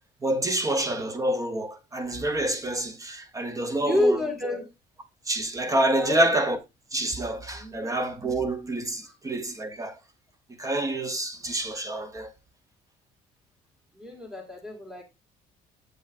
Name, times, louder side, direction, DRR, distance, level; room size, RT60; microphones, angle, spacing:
voice 1, 0.2-4.2 5.3-6.6 6.9-10.0 10.6-12.3, right 1 dB, 20° right, 0.7 m, -27 dB
voice 2, 3.8-4.6 6.0-6.3 7.5-7.9 14.0-15.0, left 1 dB, 5° right, 1.7 m, -28 dB
7.5 x 5.4 x 2.5 m
cardioid pair, 110°, 17 cm